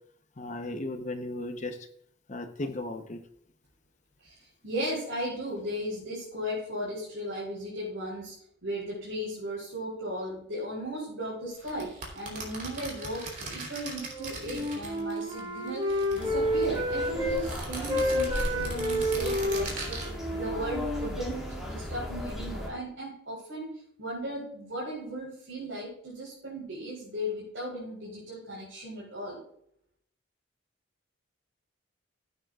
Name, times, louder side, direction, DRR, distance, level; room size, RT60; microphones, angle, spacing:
voice 1, 0.4-1.8 2.3-3.2, left 2 dB, 35° left, 7 dB, 0.8 m, -35 dB
voice 2, 4.2-8.3 8.6-11.9 12.1-20.0 20.3-23.7 24.0-29.4, equal, 70° right, -6 dB, 4.3 m, -36 dB
sound 1, 11.6-15.4 15.7-16.8 17.3-20.1, right 2 dB, 40° right, 3.1 m, -39 dB
Wind instrument woodwind instrument, 14.0-17.4 17.7-21.6, equal, 20° right, 1.3 m, -30 dB
sound 2, 16.2-22.7, equal, ahead, 2.3 m, -37 dB
15.5 x 8.9 x 2.4 m, 0.68 s
head